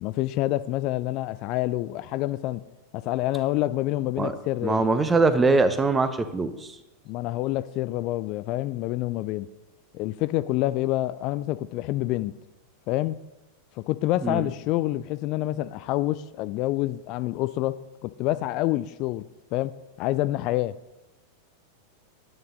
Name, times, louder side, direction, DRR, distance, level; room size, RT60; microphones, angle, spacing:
voice 1, 0.0-2.6 2.9-4.8 7.1-9.5 9.9-12.3 12.9-13.2 13.9-19.3 19.5-19.7 20.0-20.8, left 16 dB, 40° left, 15 dB, 0.3 m, -27 dB
voice 2, 4.6-6.7 14.2-14.4, right 3 dB, 15° right, 12 dB, 0.8 m, -22 dB
11.0 x 9.1 x 3.9 m, 1.0 s
figure-of-eight pair, 90°, 0 cm